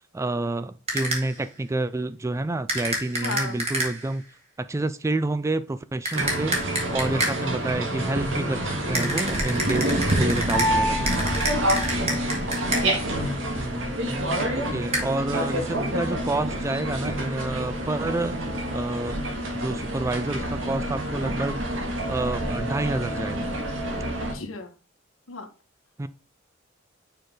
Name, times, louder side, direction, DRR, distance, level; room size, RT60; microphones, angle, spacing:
voice 1, 0.1-4.2 4.6-6.5 6.9-11.2 13.5-18.4 18.7-19.2 19.5-21.6 22.1-23.5 26.0-26.1, right 2 dB, 15° right, 0.3 m, -29 dB
sound 1, 0.9-1.4 2.7-4.1 6.0-7.6 8.9-13.1 14.9-15.0, right 1 dB, 30° right, 2.2 m, -29 dB
voice 2, 3.2-3.6 24.3-24.7 25.3-25.5, left 3 dB, 85° left, 1.4 m, -34 dB
sound 2, 6.1-24.3, right 1 dB, 70° right, 1.8 m, -27 dB
6.5 x 4.9 x 3.9 m
head